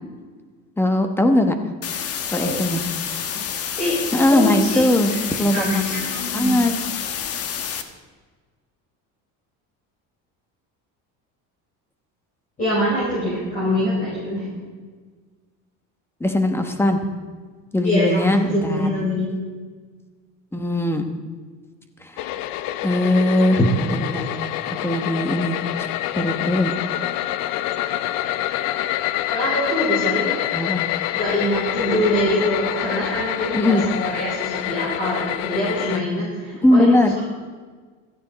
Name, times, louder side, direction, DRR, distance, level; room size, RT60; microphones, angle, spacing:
voice 1, 0.8-1.5 2.3-2.8 4.1-5.1 5.4-5.7 6.3-6.7 16.2-17.0 17.7-18.9 20.5-21.1 22.1-22.3 22.8-24.3 24.8-25.6 26.2-26.7 30.5-30.8 33.5-33.8 36.6-37.1, left 1 dB, 5° left, 6 dB, 1.1 m, -19 dB
sound 1, 1.8-7.8, left 8 dB, 45° left, 1.2 m, -28 dB
voice 2, 2.4-2.8 3.8-4.0 4.3-6.5 12.6-14.5 17.8-19.3 29.3-30.4 31.1-37.2, equal, 25° left, -7 dB, 5.6 m, -24 dB
sound 2, 22.2-36.0, left 13 dB, 80° left, 0.7 m, -26 dB
16.5 x 14.0 x 4.1 m, 1.5 s
cardioid pair, 160°, 34 cm